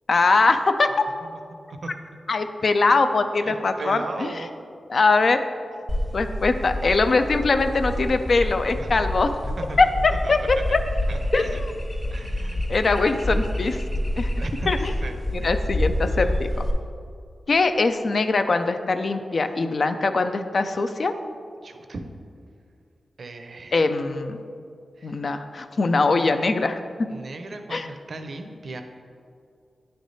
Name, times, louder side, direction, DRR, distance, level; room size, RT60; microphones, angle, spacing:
voice 1, 0.1-0.9 2.3-4.3 4.9-5.4 6.1-9.3 9.8-10.8 11.3-11.7 12.7-13.8 14.2-14.3 14.7-14.9 15.3-16.5 17.5-21.1 23.7-24.4 25.0-26.8 27.7-27.9, left 3 dB, 60° left, 8 dB, 0.4 m, -22 dB
voice 2, 3.4-4.7 8.8-8.9 9.4-9.8 10.2-10.6 11.1-11.6 12.1-12.6 14.4-14.7 15.0-15.6 21.6-22.0 23.2-23.8 25.0-25.2 27.1-28.8, right 3 dB, 65° right, 6 dB, 0.5 m, -37 dB
sound 1, 5.9-16.7, left 1 dB, 30° left, 1.1 m, -28 dB
9.1 x 3.3 x 4.0 m, 2.3 s
cardioid pair, 55°, 0 cm